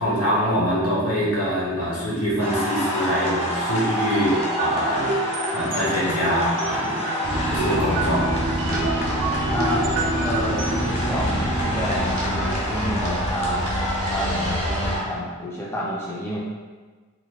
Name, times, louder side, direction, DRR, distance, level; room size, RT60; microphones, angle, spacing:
voice 1, 0.0-5.2 5.5-7.0 7.5-8.3 8.7-8.9, equal, 80° left, -5 dB, 1.1 m, -24 dB
sound 1, 2.4-15.0, equal, 30° left, 0.8 m, -28 dB
sound 2, 4.1-10.9, right 2 dB, 60° right, 0.4 m, -29 dB
sound 3, 7.2-15.0, equal, 80° right, 0.9 m, -27 dB
voice 2, 9.5-13.7 14.1-16.4, equal, 10° left, -5 dB, 0.4 m, -29 dB
3.9 x 3.1 x 2.3 m, 1.4 s
head